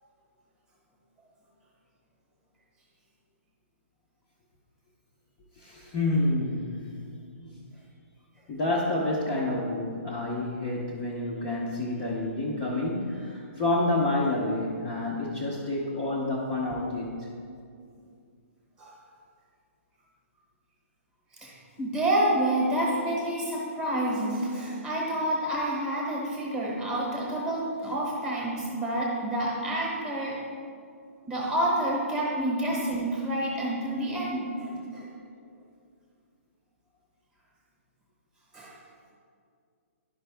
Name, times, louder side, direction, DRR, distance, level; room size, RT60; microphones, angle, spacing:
voice 1, 5.6-6.9 7.4-7.5 8.5-17.3, left 2 dB, 15° left, -5 dB, 0.6 m, -29 dB
voice 2, 21.4-30.5 31.3-35.1 38.5-38.8, right 1 dB, 10° right, -4 dB, 1.0 m, -28 dB
11.0 x 5.2 x 3.3 m, 2.3 s
hypercardioid pair, 175°, 8 cm